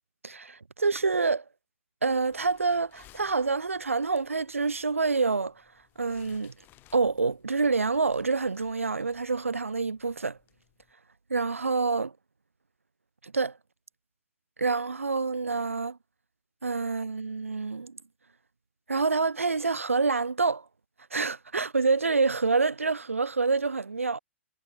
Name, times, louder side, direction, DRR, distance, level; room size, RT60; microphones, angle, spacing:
voice 1, 0.2-1.4 2.0-5.6 6.0-6.5 6.9-10.4 11.3-12.1 13.2-13.6 14.6-16.0 16.6-17.9 18.9-20.7 21.1-24.2, right 4 dB, 85° right, 0.4 m, -27 dB
sound 1, 2.0-10.9, left 15 dB, 30° left, 6.5 m, -62 dB
figure-of-eight pair, 110°, 7 cm